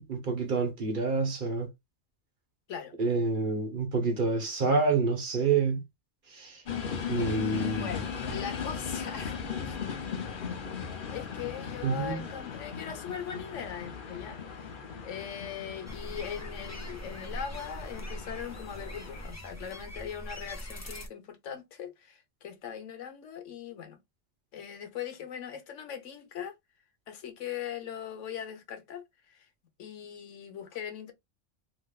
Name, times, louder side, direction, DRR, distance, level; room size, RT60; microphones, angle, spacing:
voice 1, 0.0-1.7 3.0-5.8 6.3-6.6 7.1-8.1 11.8-12.2, right 4 dB, 45° right, 1.0 m, -28 dB
sound 1, 6.7-19.3, left 6 dB, 50° left, 0.8 m, -38 dB
voice 2, 7.7-9.4 9.6-9.8 10.9-24.0 24.5-26.5 27.1-29.5 29.8-31.1, left 8 dB, 90° left, 1.2 m, -40 dB
sound 2, 15.9-21.1, equal, 25° left, 0.4 m, -42 dB
3.3 x 2.9 x 2.3 m
omnidirectional pair, 1.2 m